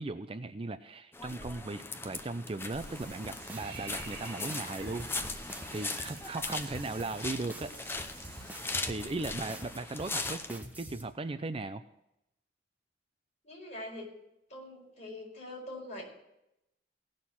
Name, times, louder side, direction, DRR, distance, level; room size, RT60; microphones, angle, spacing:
voice 1, 0.0-5.1 5.7-7.7 8.8-11.8, right 2 dB, 30° right, 11 dB, 0.5 m, -37 dB
sound 1, 1.1-10.5, left 3 dB, 10° left, 0.7 m, -39 dB
Water / Bathtub (filling or washing), 2.7-8.7, right 4 dB, 60° right, 2.4 m, -49 dB
sound 2, 3.0-11.0, right 1 dB, 10° right, 1.1 m, -46 dB
voice 2, 13.4-14.1 14.5-16.0, left 1 dB, 40° left, -2 dB, 4.7 m, -43 dB
17.5 x 6.5 x 5.7 m, 0.85 s
head